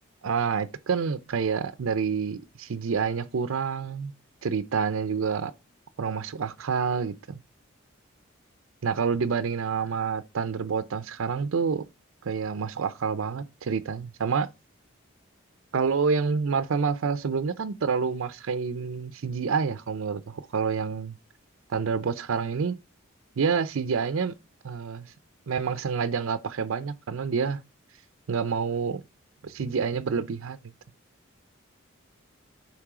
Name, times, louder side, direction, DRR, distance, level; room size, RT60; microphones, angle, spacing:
voice 1, 0.2-4.1 4.4-5.5 6.0-7.4 8.8-11.8 12.2-14.5 15.7-21.1 21.7-22.8 23.4-24.3 24.6-25.1 25.5-27.6 28.3-29.0 29.4-30.6, right 5 dB, 75° right, 0.5 m, -28 dB
8.4 x 3.2 x 4.8 m
head